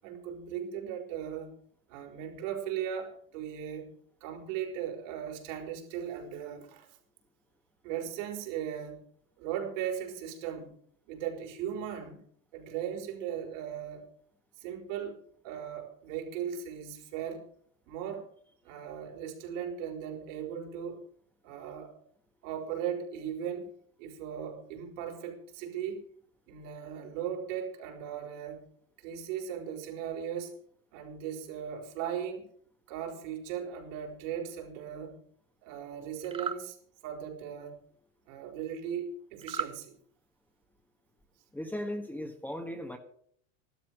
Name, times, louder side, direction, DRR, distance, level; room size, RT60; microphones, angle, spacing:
voice 1, 0.0-1.6 1.9-3.9 4.2-6.9 7.8-9.0 9.4-10.7 11.1-12.2 12.5-14.1 14.6-15.2 15.4-17.5 17.9-18.3 18.6-21.0 21.4-22.0 22.4-26.1 26.5-28.7 29.0-30.6 30.9-32.5 32.9-35.2 35.6-36.8 37.0-37.8 38.3-39.9, right 9 dB, 70° right, 1 dB, 4.8 m, -38 dB
sound 1, 36.2-36.6 39.4-39.8, right 6 dB, 15° right, 0.6 m, -35 dB
voice 2, 41.5-43.0, left 1 dB, 5° left, 5 dB, 1.4 m, -37 dB
14.5 x 12.5 x 6.4 m, 0.62 s
supercardioid pair, 135°, 39 cm